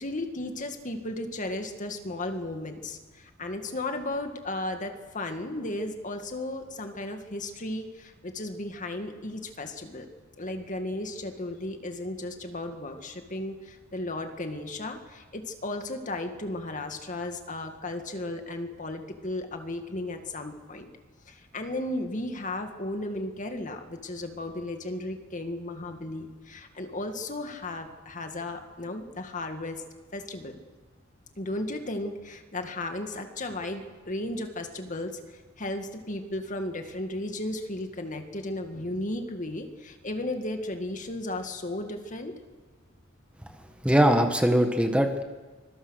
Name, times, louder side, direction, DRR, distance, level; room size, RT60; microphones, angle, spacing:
voice 1, 0.0-10.1 10.4-20.9 21.3-29.8 30.1-30.6 31.4-42.3, left 1 dB, 40° left, 5 dB, 2.1 m, -35 dB
voice 2, 43.8-45.2, equal, 5° right, 5 dB, 1.4 m, -21 dB
25.0 x 23.0 x 6.5 m, 1.3 s
head